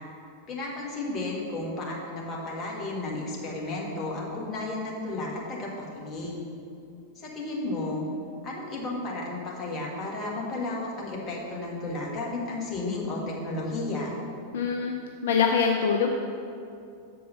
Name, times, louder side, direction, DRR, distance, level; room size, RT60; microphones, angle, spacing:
voice 1, 0.5-6.4 7.1-8.0 8.4-14.2, left 2 dB, 25° left, -3 dB, 1.6 m, -33 dB
voice 2, 14.5-15.0 15.2-16.1, left 6 dB, 60° left, 2 dB, 0.5 m, -23 dB
7.0 x 4.6 x 5.5 m, 2.5 s
figure-of-eight pair, 90°, 0 cm